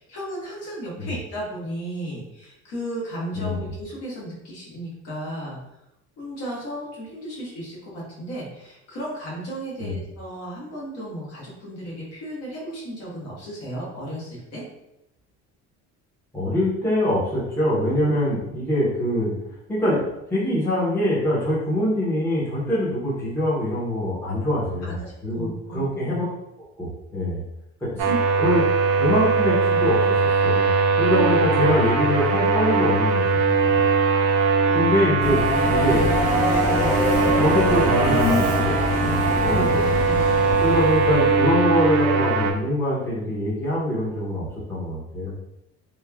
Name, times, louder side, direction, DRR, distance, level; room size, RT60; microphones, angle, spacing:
voice 1, 0.0-5.6 6.2-14.6 24.8-26.0 27.8-28.1 34.6-35.0 39.4-39.8, right 1 dB, 60° left, -5 dB, 1.1 m, -35 dB
voice 2, 16.3-19.3 19.7-20.0 20.3-24.9 25.2-26.2 26.8-27.4 27.8-28.7 29.0-30.2 30.4-30.7 31.0-33.8 34.7-36.0 36.8-37.0 37.3-39.8 40.6-45.4, left 1 dB, 10° left, -9 dB, 0.7 m, -24 dB
sound 1, 28.0-42.5, right 4 dB, 55° right, 0.4 m, -20 dB
Subway metro underground, 35.2-41.4, left 1 dB, 75° left, 1.4 m, -25 dB
3.1 x 2.1 x 2.3 m, 0.86 s
cardioid pair, 160°, 29 cm